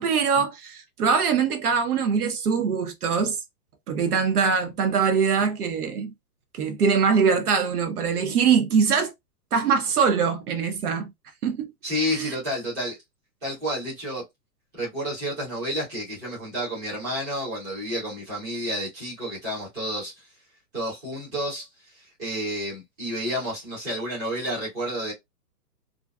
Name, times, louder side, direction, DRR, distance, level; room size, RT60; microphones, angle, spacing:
voice 1, 0.0-3.4 3.9-6.1 6.5-9.1 9.5-11.1 11.4-11.7 12.1-12.4, right 6 dB, 65° right, 0.6 m, -23 dB
voice 2, 11.8-13.0 13.4-14.2 14.8-20.3 20.7-21.7 22.2-25.1, equal, 10° right, 0.8 m, -30 dB
2.5 x 2.2 x 2.2 m
hypercardioid pair, 175°, 49 cm